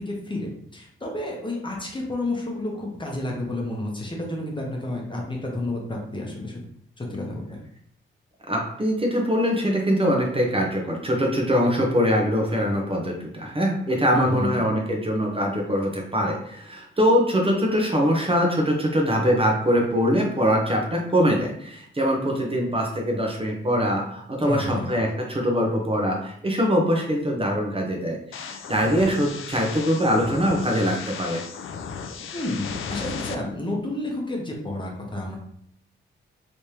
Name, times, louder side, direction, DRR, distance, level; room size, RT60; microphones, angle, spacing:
voice 1, 0.0-6.6 7.0-7.6 14.1-14.7 24.4-25.0 32.3-35.4, left 2 dB, 25° left, -1 dB, 0.9 m, -30 dB
voice 2, 8.5-31.4, equal, 25° right, 0 dB, 0.8 m, -23 dB
sound 1, 28.3-33.3, left 6 dB, 75° left, 0.4 m, -35 dB
3.3 x 3.2 x 2.8 m, 0.69 s
cardioid pair, 80°, 21 cm